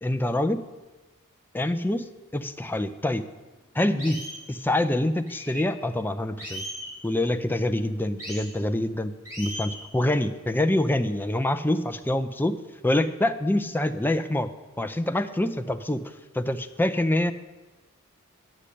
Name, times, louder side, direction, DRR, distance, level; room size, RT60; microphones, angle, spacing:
voice 1, 0.0-0.6 1.5-3.3 3.7-4.2 4.5-6.6 7.0-9.1 9.4-12.6 12.8-14.5 14.8-16.0 16.3-17.3, left 1 dB, 10° left, 9 dB, 0.4 m, -25 dB
sound 1, 2.7-2.8 3.3-3.4 4.0-4.4 5.3-5.7 6.4-6.9 8.2-8.5 9.2-9.8, equal, 15° right, 3.3 m, -37 dB
10.0 x 6.4 x 8.4 m, 1.2 s
head